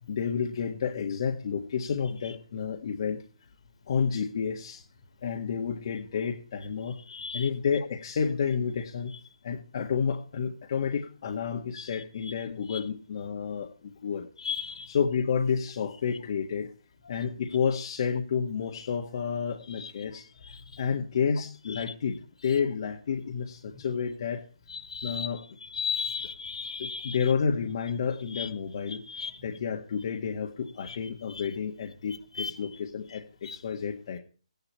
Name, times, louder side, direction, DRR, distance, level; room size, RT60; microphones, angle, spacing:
voice 1, 0.1-3.2 3.9-4.8 5.2-7.0 7.3-9.2 9.4-14.3 14.9-16.7 17.1-20.3 20.8-24.4 25.0-25.4 26.1-26.2 26.8-29.0 29.4-34.2, left 6 dB, 45° left, 1.8 m, -30 dB
voice 2, 7.1-7.5 12.2-12.3 12.7-12.8 14.4-14.9 17.1-17.2 19.7-20.1 20.4-20.8 21.7-21.8 23.7-23.8 24.7-25.3 25.6-27.2 28.3-28.5 28.9-29.6 30.8-31.0 31.3-31.5 32.3-32.5 33.4-33.6, left 5 dB, 70° left, 3.4 m, -36 dB
14.5 x 11.0 x 4.4 m
hypercardioid pair, 160°, 3 cm